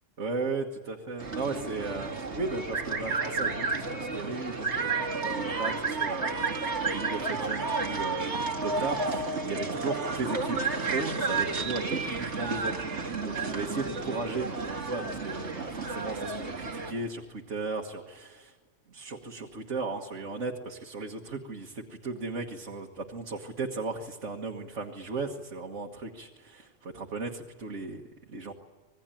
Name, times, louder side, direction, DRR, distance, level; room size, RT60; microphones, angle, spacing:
voice 1, 0.2-4.9 5.2-6.6 6.8-18.6 18.9-28.0 28.3-28.5, right 3 dB, 90° right, 1 dB, 1.9 m, -36 dB
sound 1, 1.2-16.9, right 4 dB, 70° right, 2.5 m, -31 dB
26.5 x 20.5 x 9.1 m, 1.4 s
omnidirectional pair, 1.2 m